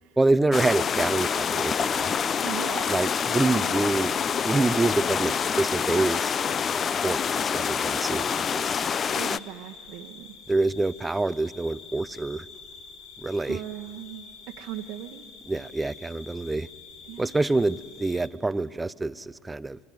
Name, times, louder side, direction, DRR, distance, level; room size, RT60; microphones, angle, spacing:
voice 1, 0.2-2.1 2.9-4.1 4.4-6.3 7.0-8.8 10.5-12.5 13.2-13.6 15.5-16.7 17.2-19.8, right 2 dB, 15° right, 19 dB, 0.6 m, -26 dB
sound 1, 0.5-9.4, left 7 dB, 35° left, 0.5 m, -26 dB
sound 2, 1.0-18.3, left 5 dB, 55° left, 2.8 m, -47 dB
voice 2, 2.4-3.0 3.4-3.8 9.1-10.4 13.5-15.3 15.5-15.7 17.1-17.4, right 13 dB, 60° right, 3 dB, 1.1 m, -39 dB
27.0 x 22.5 x 9.6 m, 2.6 s
figure-of-eight pair, 70°, 0 cm